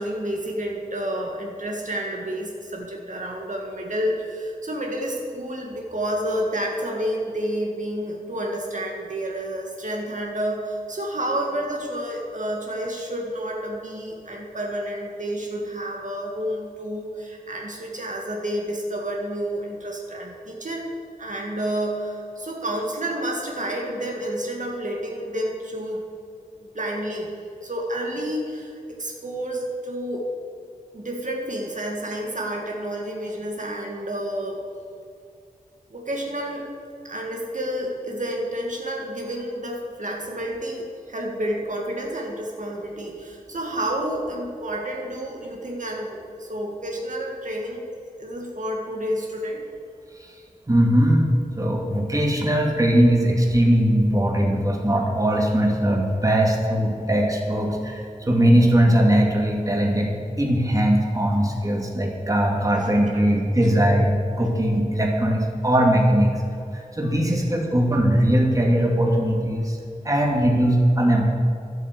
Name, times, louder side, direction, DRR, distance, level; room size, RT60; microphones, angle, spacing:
voice 1, 0.0-20.9 21.2-26.1 26.7-27.3 27.6-30.3 30.9-34.6 35.9-36.7 37.0-47.9 48.2-49.6 62.7-62.8 63.1-63.2, right 1 dB, 60° right, -1 dB, 2.0 m, -30 dB
voice 2, 50.7-51.3 51.6-60.1 60.4-66.4 66.7-69.8 70.0-71.2, equal, 25° right, -1 dB, 2.4 m, -20 dB
12.5 x 8.1 x 8.2 m, 2.4 s
wide cardioid pair, 80°, 15 cm